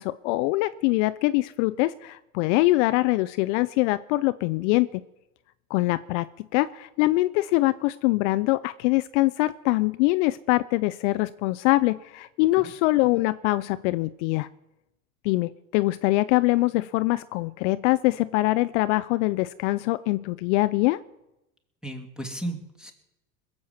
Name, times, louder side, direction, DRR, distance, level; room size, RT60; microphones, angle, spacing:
voice 1, 0.0-5.0 5.7-14.5 15.2-21.0, left 19 dB, 55° left, 14 dB, 0.6 m, -23 dB
voice 2, 21.8-22.9, right 1 dB, ahead, 4 dB, 2.6 m, -35 dB
21.0 x 7.6 x 7.3 m, 0.92 s
hypercardioid pair, 100°, 43 cm